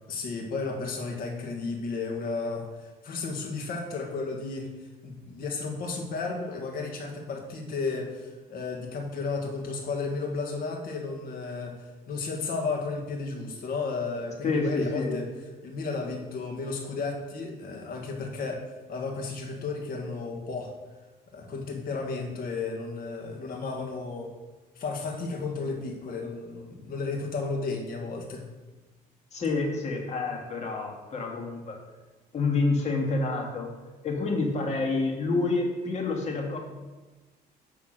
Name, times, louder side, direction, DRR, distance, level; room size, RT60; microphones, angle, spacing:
voice 1, 0.1-4.7 5.0-15.3 15.6-20.7 21.3-24.3 24.8-28.5, left 4 dB, 60° left, 2 dB, 1.8 m, -33 dB
voice 2, 14.4-15.2 29.3-31.8 32.3-33.7 34.0-36.6, left 3 dB, 40° left, 1 dB, 2.0 m, -28 dB
10.0 x 3.6 x 6.5 m, 1.2 s
cardioid pair, 110°, 17 cm